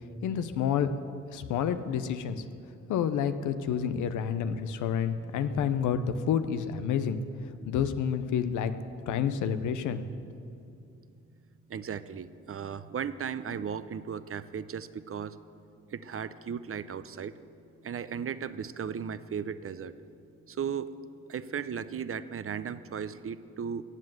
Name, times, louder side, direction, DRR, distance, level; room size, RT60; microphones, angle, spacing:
voice 1, 0.2-0.9 1.3-2.4 2.9-7.2 7.7-8.7 9.1-10.1, left 8 dB, 85° left, 10 dB, 0.7 m, -29 dB
voice 2, 11.7-15.3 15.9-17.3 17.8-19.9 20.6-20.9 21.3-23.8, right 7 dB, 50° right, 14 dB, 0.7 m, -36 dB
14.5 x 7.8 x 7.7 m, 2.6 s
supercardioid pair, 55°, 29 cm